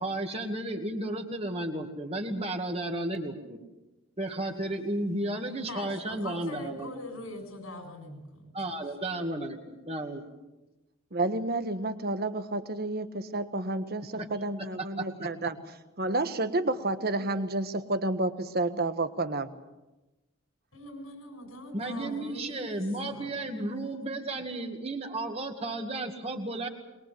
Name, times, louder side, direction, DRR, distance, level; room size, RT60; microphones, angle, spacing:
voice 1, 0.0-3.6 4.2-7.3 8.5-10.3 14.2-14.3 15.0-15.3 21.7-26.7, right 1 dB, 30° right, 3 dB, 2.2 m, -33 dB
voice 2, 5.7-8.8 20.7-23.3, left 2 dB, 85° left, 5 dB, 6.6 m, -43 dB
voice 3, 11.1-15.6 16.0-19.5, right 2 dB, 45° right, 10 dB, 1.4 m, -30 dB
23.0 x 22.0 x 7.8 m, 1.0 s
head